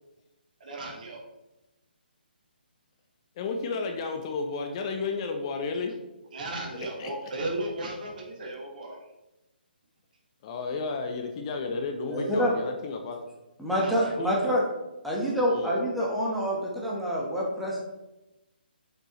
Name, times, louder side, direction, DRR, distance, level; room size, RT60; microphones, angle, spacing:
voice 1, 0.6-1.2 6.3-9.0 13.8-14.1, right 2 dB, 50° right, 0 dB, 1.9 m, -35 dB
voice 2, 3.4-5.9 6.7-7.1 10.4-13.2 14.2-14.6 15.5-15.8, left 4 dB, 35° left, 5 dB, 0.7 m, -32 dB
voice 3, 12.1-12.5 13.6-14.6 15.0-17.8, equal, ahead, -5 dB, 1.2 m, -27 dB
6.4 x 5.3 x 3.1 m, 0.99 s
hypercardioid pair, 150°, 6 cm